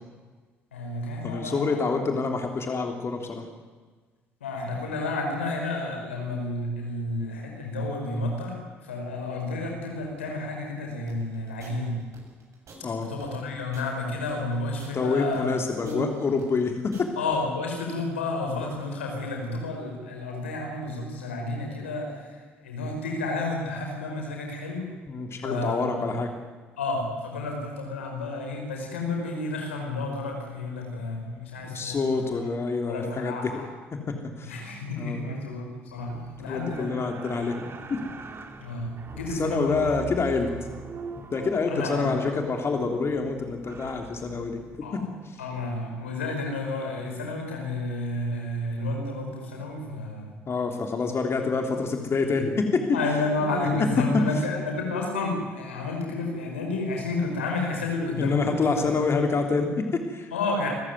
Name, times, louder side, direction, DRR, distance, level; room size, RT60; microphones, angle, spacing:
voice 1, 0.7-2.1 4.4-11.9 13.0-15.5 15.8-16.1 17.2-24.9 25.4-26.2 26.8-32.6 32.9-33.7 34.4-36.1 36.4-37.0 38.6-40.1 41.7-42.1 44.8-45.0 45.4-50.3 52.9-58.9 60.3-60.7, left 2 dB, 90° left, 2 dB, 5.4 m, -31 dB
voice 2, 1.2-3.5 12.8-13.1 14.9-17.1 25.1-26.3 31.6-33.4 33.9-34.6 34.9-35.2 36.1-38.0 39.3-40.5 41.3-45.4 50.5-53.0 53.4-53.7 58.2-60.3, left 4 dB, 40° left, 4 dB, 3.3 m, -27 dB
sound 1, 11.1-17.4, right 4 dB, 55° right, 7.1 m, -50 dB
sound 2, 36.0-47.4 47.7-47.8, right 4 dB, 40° right, 2.9 m, -43 dB
26.5 x 14.5 x 9.6 m, 1.4 s
hypercardioid pair, 50°, 6 cm